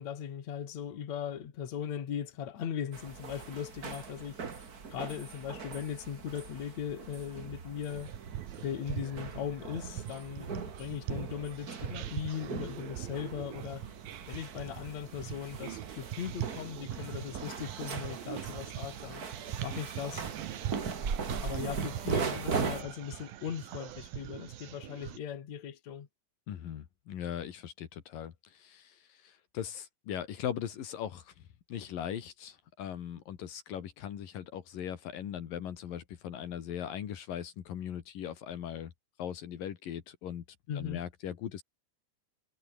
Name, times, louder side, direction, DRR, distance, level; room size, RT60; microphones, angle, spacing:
voice 1, 0.0-4.7 4.9-8.1 8.6-13.9 14.3-19.2 19.6-20.3 21.4-26.1 40.7-41.0, left 8 dB, 55° left, 3.4 m, -39 dB
sound 1, 2.9-22.8, right 5 dB, 30° right, 2.1 m, -40 dB
sound 2, 7.9-25.2, right 12 dB, 85° right, 3.3 m, -42 dB
voice 2, 26.5-38.9 39.2-40.4 40.8-41.6, left 9 dB, 75° left, 3.6 m, -39 dB
omnidirectional pair, 4.0 m